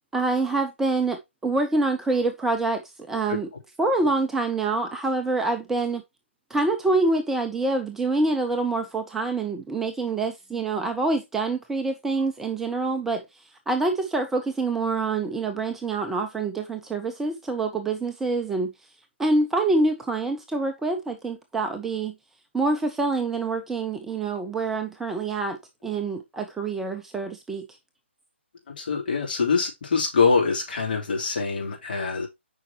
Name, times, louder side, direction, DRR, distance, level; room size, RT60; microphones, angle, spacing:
voice 1, 0.1-2.8 3.1-3.5 3.8-6.0 6.5-13.2 13.7-18.7 19.2-22.1 22.5-25.6 25.8-27.7, right 3 dB, 5° right, 0.4 m, -26 dB
voice 2, 28.7-32.3, left 4 dB, 45° left, 3.2 m, -24 dB
8.5 x 5.1 x 2.8 m
figure-of-eight pair, 140°, 7 cm